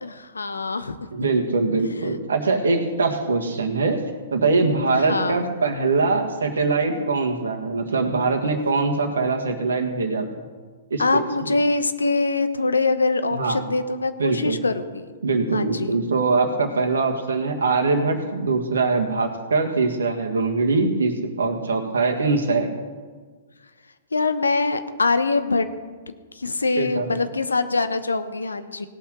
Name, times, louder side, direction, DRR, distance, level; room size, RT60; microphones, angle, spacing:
voice 1, 0.0-1.0 4.9-5.5 11.0-15.1 15.5-16.0 24.1-25.7 26.3-28.9, left 3 dB, 85° left, 11 dB, 0.9 m, -23 dB
voice 2, 1.1-4.0 4.3-10.3 10.9-11.5 13.3-13.6 14.2-14.6 15.2-22.7 26.8-27.1, right 3 dB, 75° right, 4 dB, 1.7 m, -22 dB
17.5 x 5.9 x 6.6 m, 1.5 s
figure-of-eight pair, 115°, 0 cm